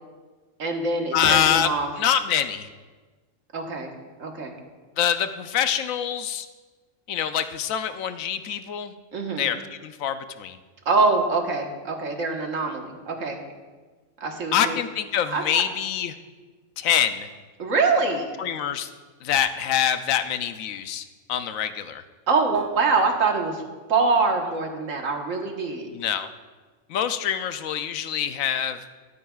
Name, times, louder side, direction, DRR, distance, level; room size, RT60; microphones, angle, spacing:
voice 1, 0.6-1.9 3.5-3.9 4.2-4.6 9.1-9.5 10.8-13.4 14.2-14.8 15.3-15.6 17.6-18.3 22.3-23.6 23.9-25.9, right 4 dB, 70° right, 2 dB, 1.7 m, -24 dB
voice 2, 1.1-1.7 2.0-2.7 5.0-6.5 7.1-8.9 9.4-9.6 9.8-10.6 14.5-16.2 16.8-17.3 18.4-18.9 19.2-22.0 25.9-26.3 26.9-28.8, left 9 dB, 80° left, 10 dB, 1.0 m, -25 dB
13.5 x 12.5 x 2.4 m, 1.4 s
omnidirectional pair, 1.4 m